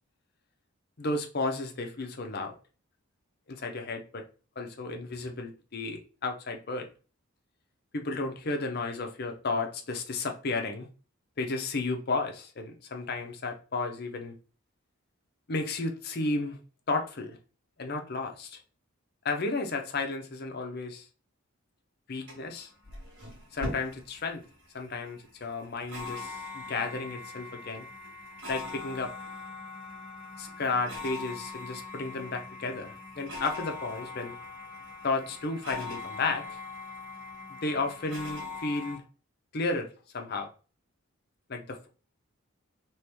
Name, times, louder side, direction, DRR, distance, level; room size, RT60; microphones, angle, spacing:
voice 1, 1.0-2.5 3.5-4.2 4.6-6.9 7.9-10.9 11.4-14.3 15.5-16.6 16.9-17.4 17.8-18.6 19.2-21.1 22.1-22.7 23.5-24.4 24.7-27.9 28.5-29.1 30.4-34.4 35.0-36.6 37.6-39.0 39.5-40.5 41.5-41.9, left 3 dB, 45° left, 0.6 m, -33 dB
sound 1, 22.3-39.0, left 3 dB, 55° right, 1.7 m, -41 dB
3.1 x 3.0 x 3.4 m
head